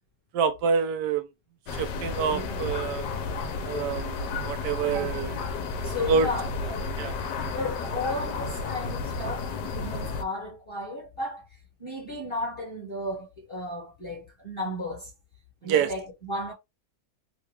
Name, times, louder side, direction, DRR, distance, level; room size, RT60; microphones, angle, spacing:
voice 1, 0.3-1.3 1.8-3.0 3.6-5.3 6.1-6.3 7.0-7.1 15.6-15.9, right 6 dB, 75° right, 1.2 m, -26 dB
sound 1, 1.7-10.2, left 4 dB, 75° left, 1.3 m, -32 dB
voice 2, 2.3-2.6 4.9-5.1 5.8-15.1 15.6-16.5, left 1 dB, 20° left, 1.1 m, -35 dB
3.5 x 2.3 x 3.2 m
omnidirectional pair, 1.9 m